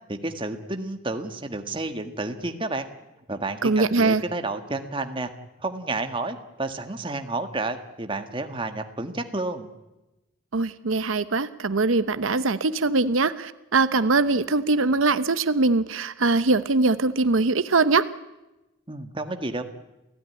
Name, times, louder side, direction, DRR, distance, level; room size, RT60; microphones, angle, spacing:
voice 1, 0.1-2.8 3.3-5.3 5.6-9.7 18.9-19.6, right 2 dB, 25° right, 6 dB, 1.7 m, -30 dB
voice 2, 3.6-4.2 10.5-18.0, right 3 dB, 80° right, 12 dB, 0.9 m, -22 dB
29.0 x 16.5 x 9.8 m, 1.0 s
head